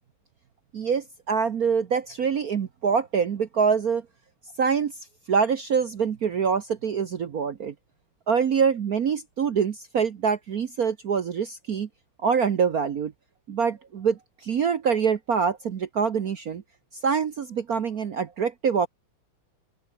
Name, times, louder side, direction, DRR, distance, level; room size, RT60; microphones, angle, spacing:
voice 1, 0.7-4.0 4.6-4.9 5.3-7.7 8.3-11.9 12.2-13.1 13.5-16.6 17.0-18.9, right 6 dB, 50° right, 1.3 m, -25 dB
open air
omnidirectional pair, 2.4 m